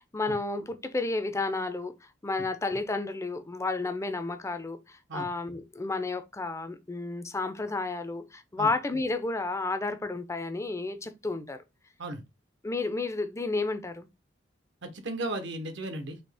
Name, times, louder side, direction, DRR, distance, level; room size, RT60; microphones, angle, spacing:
voice 1, 0.0-11.6 12.6-14.1, left 3 dB, 15° left, 0.5 m, -32 dB
voice 2, 14.8-16.2, right 1 dB, 65° right, 0.9 m, -35 dB
4.3 x 2.8 x 3.3 m
head